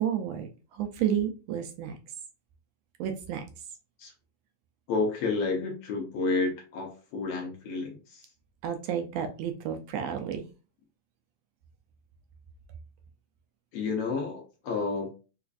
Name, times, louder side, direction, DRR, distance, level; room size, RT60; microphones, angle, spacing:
voice 1, 0.0-2.0 3.0-3.4 8.6-10.4, right 9 dB, 80° right, 5 dB, 1.5 m, -31 dB
voice 2, 4.9-8.2 13.7-15.1, left 3 dB, 70° left, 1 dB, 1.5 m, -30 dB
4.7 x 2.5 x 2.3 m, 0.33 s
omnidirectional pair, 3.4 m